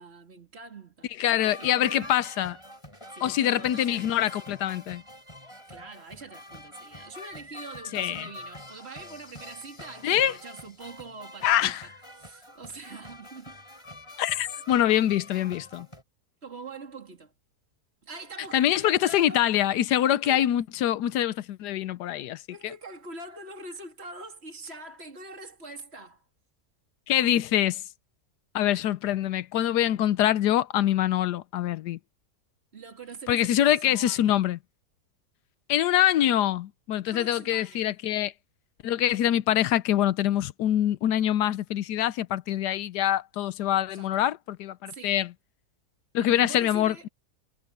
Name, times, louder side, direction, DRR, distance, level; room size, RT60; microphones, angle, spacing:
voice 1, 0.0-2.2 3.1-4.3 5.4-11.9 12.2-13.6 16.4-17.3 18.0-19.5 20.1-20.5 22.5-26.2 32.7-34.4 37.1-37.9 43.9-44.3 44.9-45.2 46.2-47.1, right 3 dB, 40° right, 3.4 m, -44 dB
voice 2, 1.2-2.6 3.2-5.0 7.9-8.3 10.0-10.3 11.4-11.8 14.2-15.9 18.5-22.4 27.1-27.8 28.5-32.0 33.3-34.6 35.7-38.3 38.8-45.3 46.1-47.1, left 12 dB, 85° left, 1.3 m, -24 dB
sound 1, 1.4-16.0, left 1 dB, 15° left, 7.8 m, -45 dB
omnidirectional pair, 1.7 m